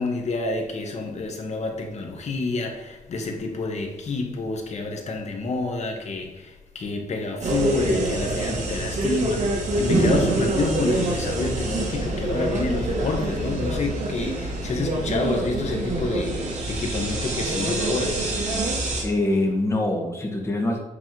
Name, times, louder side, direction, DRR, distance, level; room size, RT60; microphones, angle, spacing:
voice 1, 0.0-18.3, left 3 dB, 50° left, 1.4 m, -28 dB
sound 1, 7.4-19.0, right 2 dB, 55° right, 1.8 m, -25 dB
voice 2, 19.0-20.8, left 2 dB, 20° left, 1.6 m, -24 dB
8.6 x 3.5 x 4.5 m
wide cardioid pair, 135°, 14 cm